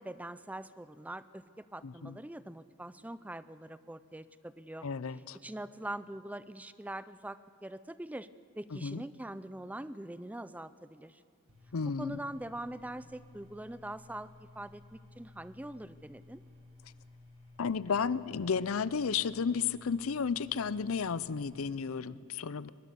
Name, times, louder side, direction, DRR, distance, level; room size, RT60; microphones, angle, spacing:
voice 1, 0.0-4.9 5.4-8.3 8.6-11.2 12.0-16.4, right 1 dB, 5° right, 15 dB, 0.4 m, -43 dB
voice 2, 1.8-2.2 4.8-5.4 8.8-9.0 11.7-12.2 17.6-22.7, left 6 dB, 85° left, 18 dB, 0.6 m, -33 dB
sound 1, 11.5-21.6, left 2 dB, 80° right, 7.4 m, -56 dB
22.5 x 21.5 x 6.9 m, 2.7 s
head